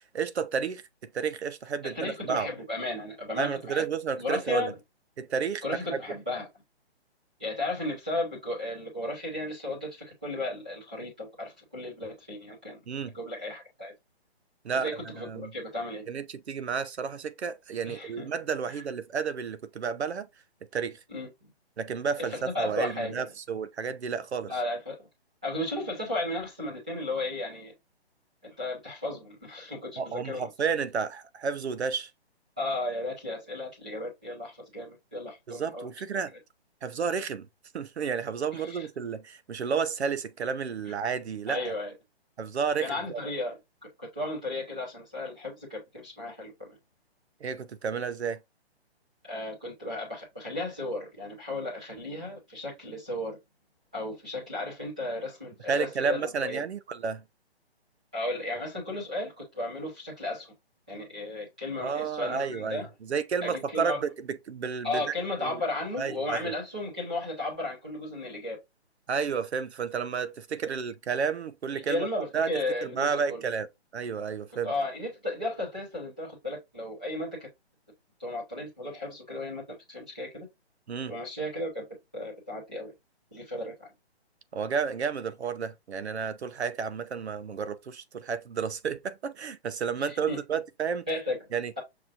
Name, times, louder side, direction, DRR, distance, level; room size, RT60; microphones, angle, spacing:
voice 1, 0.1-0.8 1.1-2.5 3.4-4.7 5.2-5.6 5.9-6.0 12.9-13.1 14.6-14.9 15.2-15.5 16.1-20.3 20.7-21.0 21.8-24.5 30.0-32.1 35.5-36.3 36.8-37.5 37.7-41.6 42.4-43.2 47.4-48.4 55.7-57.2 61.8-65.6 66.0-66.5 69.1-72.1 72.3-72.5 72.8-73.7 73.9-74.7 80.9-81.1 84.5-91.0 91.5-91.7, right 6 dB, 75° right, 0.8 m, -31 dB
voice 2, 1.8-3.8 4.2-4.8 5.6-6.4 7.4-12.8 13.1-13.9 14.8-16.0 17.8-18.3 18.7-18.8 21.1-21.5 22.2-23.2 24.5-25.1 25.4-27.7 28.4-30.4 32.6-35.9 38.5-38.9 40.9-41.0 41.5-41.9 42.8-43.6 44.0-46.8 49.2-53.4 53.9-56.6 58.1-60.5 60.9-62.9 63.4-64.0 64.8-68.6 71.7-73.4 74.6-77.5 78.2-80.5 81.1-81.9 82.1-82.9 83.3-83.9 90.0-90.4 91.1-91.8, left 2 dB, 5° right, 0.6 m, -34 dB
6.2 x 3.0 x 2.5 m
hypercardioid pair, 175°, 33 cm